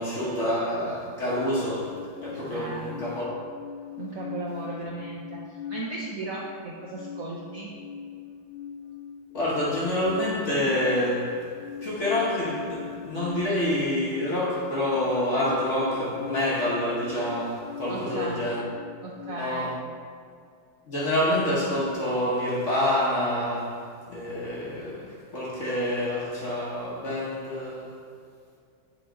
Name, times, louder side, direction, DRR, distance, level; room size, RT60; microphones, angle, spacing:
voice 1, 0.0-3.4 4.8-4.9 9.3-18.6 19.2-19.8 20.9-28.0, left 1 dB, 45° left, 1.1 m, -27 dB
sound 1, 1.8-19.4, left 7 dB, 85° left, 1.4 m, -40 dB
voice 2, 2.5-2.9 4.0-7.7 17.9-18.4 19.0-19.7, right 3 dB, 65° right, 0.8 m, -36 dB
8.4 x 3.9 x 3.8 m
omnidirectional pair, 2.1 m